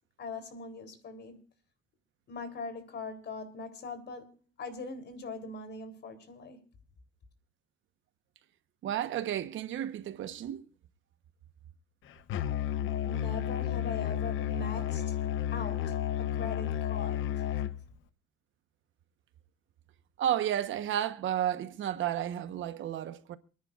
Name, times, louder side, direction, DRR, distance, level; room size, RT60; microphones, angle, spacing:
voice 1, 0.2-1.4 2.3-6.6 13.0-15.2 15.5-17.5, left 3 dB, 60° left, 3.6 m, -41 dB
voice 2, 8.8-10.6 20.2-23.4, right 11 dB, 75° right, 1.2 m, -32 dB
Musical instrument, 12.3-17.8, left 11 dB, 80° left, 0.9 m, -32 dB
28.0 x 10.0 x 2.5 m
cardioid pair, 90°, 20 cm